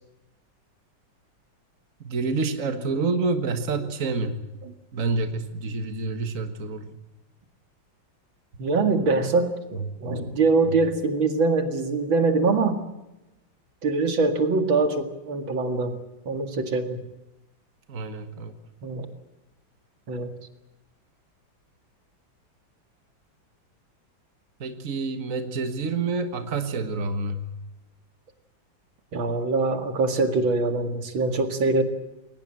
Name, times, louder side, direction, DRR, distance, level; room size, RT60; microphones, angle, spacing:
voice 1, 2.0-4.4 4.9-7.0 17.9-18.5 24.6-27.5, right 3 dB, 45° right, 8 dB, 2.0 m, -28 dB
voice 2, 8.6-12.8 13.8-16.0 16.3-17.0 18.8-19.1 20.1-20.3 26.7-26.8 29.1-31.8, right 3 dB, 85° right, 7 dB, 2.9 m, -23 dB
21.5 x 19.5 x 7.6 m, 0.97 s
omnidirectional pair, 2.1 m